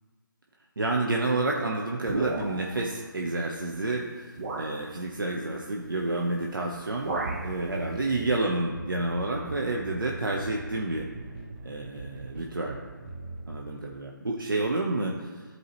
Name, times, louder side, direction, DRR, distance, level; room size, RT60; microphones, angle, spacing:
voice 1, 0.8-4.3 4.6-7.1 7.4-11.1 11.6-12.7 13.5-15.4, right 2 dB, 70° right, 0 dB, 1.0 m, -29 dB
sound 1, 2.0-2.8 3.7-3.8 4.4-4.8 6.2-6.5 6.7-7.5, right 3 dB, 50° right, 1.2 m, -33 dB
sound 2, 7.2-13.6, right 2 dB, 30° right, 1.1 m, -41 dB
14.0 x 4.7 x 3.1 m, 1.5 s
figure-of-eight pair, 150°, 12 cm